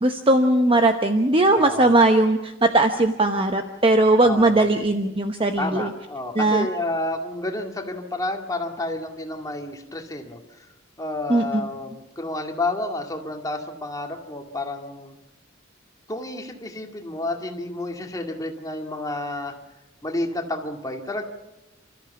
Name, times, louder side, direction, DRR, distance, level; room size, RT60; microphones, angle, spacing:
voice 1, 0.0-5.9 6.4-6.7 11.3-11.6, right 2 dB, 30° right, 6 dB, 0.9 m, -19 dB
voice 2, 1.5-1.9 4.2-4.7 5.6-10.4 11.0-15.2 16.1-19.5 20.0-21.2, left 2 dB, 20° left, 2 dB, 2.3 m, -30 dB
29.0 x 13.5 x 7.1 m, 1.0 s
head